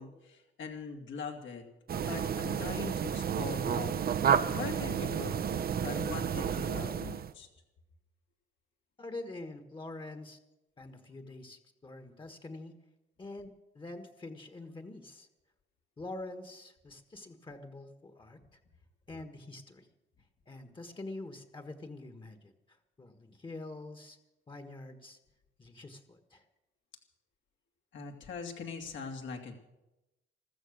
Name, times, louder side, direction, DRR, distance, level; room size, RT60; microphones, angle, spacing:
voice 1, 0.0-1.6 2.1-4.2 4.5-5.5 5.8-7.5 27.9-29.6, left 5 dB, 70° left, 2 dB, 2.6 m, -41 dB
sound 1, 1.9-7.3, right 8 dB, 50° right, 0.8 m, -31 dB
voice 2, 9.0-10.4 10.8-12.7 13.2-15.3 16.0-18.6 19.1-19.9 20.5-22.5 23.0-24.2 24.5-25.2 25.6-26.4, left 2 dB, 25° left, 7 dB, 1.5 m, -45 dB
14.0 x 14.0 x 6.6 m, 0.96 s
cardioid pair, 90°, 20 cm